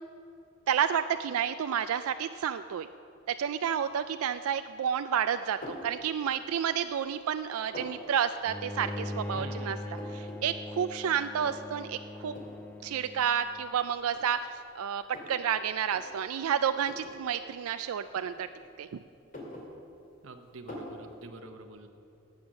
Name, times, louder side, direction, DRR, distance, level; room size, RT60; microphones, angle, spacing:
voice 1, 0.7-2.9 3.3-9.8 10.1-12.3 12.8-15.0 15.3-18.5 18.8-18.9, right 8 dB, 90° right, 10 dB, 0.4 m, -30 dB
sound 1, 5.6-5.9 6.5-7.1 7.4-8.0 8.7-9.1 9.5-9.6 9.7-10.4 10.7-10.8 11.4-11.8 12.3-12.6 13.5-13.6 14.1-15.4 15.8-16.0 16.8-17.2 18.1-18.8 19.2-20.2 20.7-21.0, left 1 dB, 40° left, 2.4 m, -44 dB
Bowed string instrument, 8.5-13.7, left 1 dB, 10° left, 0.3 m, -40 dB
voice 2, 9.3-10.0 20.2-21.9, right 2 dB, 70° right, 6 dB, 0.8 m, -47 dB
15.0 x 8.7 x 6.3 m, 2.8 s
head